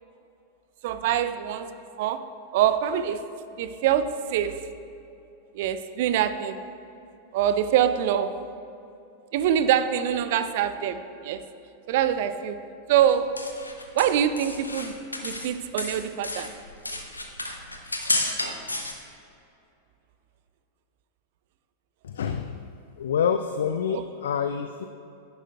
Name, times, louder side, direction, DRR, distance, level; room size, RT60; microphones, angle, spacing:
voice 1, 0.8-1.7 2.0-2.2 2.5-3.3 3.6-4.6 5.5-6.6 7.3-8.3 9.3-11.4 11.9-12.6 12.9-13.3 13.9-14.9 15.2-16.5 23.9-24.0, right 10 dB, 50° right, 11 dB, 0.4 m, -24 dB
sound 1, 13.0-15.5 15.8-18.9, left 2 dB, 80° left, 0.7 m, -31 dB
voice 2, 22.0-22.6 23.0-24.8, left 7 dB, 65° left, 8 dB, 0.3 m, -27 dB
11.0 x 9.7 x 2.2 m, 2.7 s
figure-of-eight pair, 90°, 0 cm